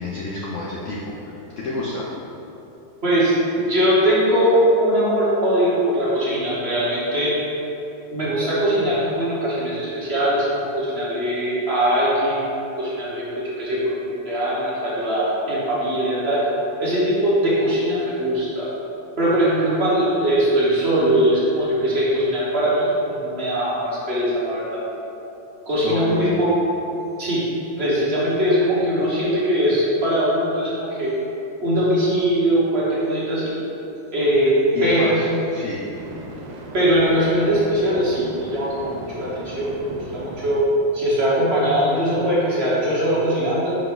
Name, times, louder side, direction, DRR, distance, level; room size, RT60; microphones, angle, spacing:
voice 1, 0.0-2.1 25.8-26.4 34.7-35.9, left 2 dB, 70° left, -4 dB, 0.7 m, -29 dB
voice 2, 3.0-3.3 3.7-7.4 8.1-12.4 12.8-13.2 13.6-14.0 14.2-16.4 16.8-18.6 19.2-24.8 25.6-26.5 27.2-27.4 27.8-31.1 31.6-33.5 34.1-34.5 34.8-35.2 36.7-40.6 40.9-43.8, equal, 40° right, -8 dB, 1.3 m, -21 dB
sound 1, 31.1-31.2 35.9-40.6, right 2 dB, 85° right, 1.4 m, -37 dB
5.2 x 4.9 x 3.8 m, 3.0 s
omnidirectional pair, 2.0 m